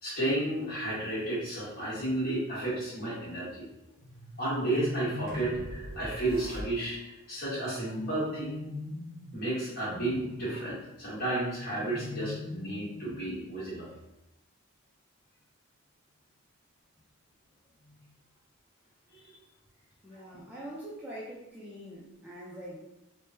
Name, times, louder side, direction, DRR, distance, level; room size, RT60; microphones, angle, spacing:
voice 1, 0.0-3.7 4.4-8.7 9.3-13.9 17.8-18.0 19.1-19.2 20.1-20.2, right 1 dB, 45° left, -8 dB, 1.5 m, -32 dB
sound 1, 4.0-5.8 7.7-9.5 11.4-13.3, left 2 dB, 70° left, 0.4 m, -41 dB
sound 2, 5.3-7.2, right 1 dB, 75° right, 0.6 m, -42 dB
voice 2, 20.0-22.8, equal, 10° right, -7 dB, 0.4 m, -43 dB
3.4 x 2.2 x 2.6 m, 0.92 s
head